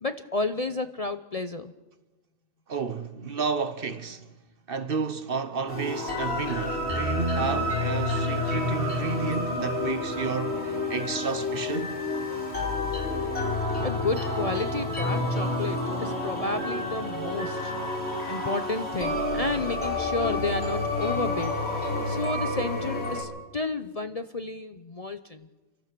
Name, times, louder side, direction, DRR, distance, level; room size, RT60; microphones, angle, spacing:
voice 1, 0.0-1.7 13.8-17.7 18.1-21.5 22.1-25.5, left 3 dB, 35° left, 0.7 m, -31 dB
voice 2, 2.7-4.2 4.7-12.0, right 5 dB, 50° right, 1.1 m, -31 dB
sound 1, 5.7-23.2, left 2 dB, 55° left, 5.1 m, -29 dB
30.0 x 13.5 x 6.8 m
omnidirectional pair, 1.3 m